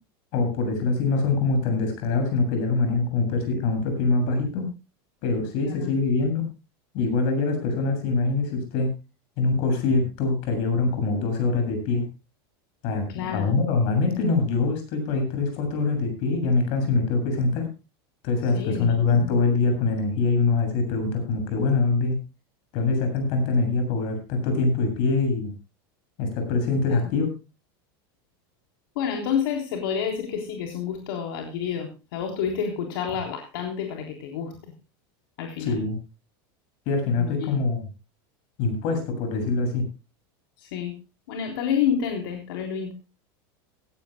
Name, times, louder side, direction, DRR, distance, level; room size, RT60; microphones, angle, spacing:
voice 1, 0.3-4.6 5.2-6.4 6.9-8.9 9.4-12.0 12.8-17.7 18.2-22.2 22.7-25.5 26.2-27.3 35.6-36.0 36.9-37.9 38.6-39.9, left 3 dB, 45° left, 6 dB, 7.4 m, -24 dB
voice 2, 13.1-13.6 18.5-19.4 26.9-27.1 29.0-34.5 35.4-35.8 37.2-37.6 40.6-41.0 41.3-42.9, left 7 dB, 70° left, 3 dB, 3.6 m, -29 dB
17.5 x 16.5 x 2.2 m, 0.29 s
supercardioid pair, 170°, 12 cm